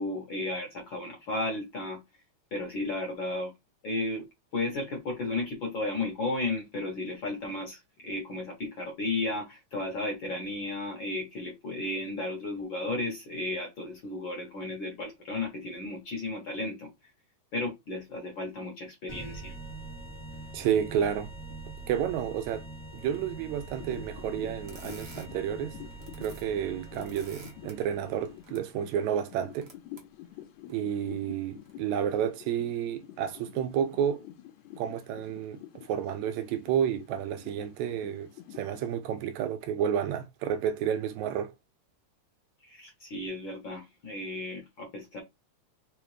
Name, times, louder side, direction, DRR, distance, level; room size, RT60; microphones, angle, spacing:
voice 1, 0.0-2.0 2.5-3.5 3.8-4.3 4.5-16.9 17.5-19.5 42.6-45.2, left 2 dB, 55° left, 1.3 m, -34 dB
sound 1, 19.1-28.5, right 2 dB, 30° left, 0.8 m, -44 dB
voice 2, 20.5-21.3 21.9-22.6 22.9-25.8 26.2-29.7 30.7-34.2 34.8-41.5, right 9 dB, 80° right, 1.9 m, -31 dB
sound 2, 23.8-38.9, left 13 dB, 80° left, 2.0 m, -48 dB
sound 3, 24.6-25.3 25.8-26.5 26.7-27.7 28.3-28.6 29.3-30.0 30.7-30.8 31.6-31.7, right 3 dB, 50° right, 1.3 m, -50 dB
4.8 x 3.5 x 3.2 m
omnidirectional pair, 3.4 m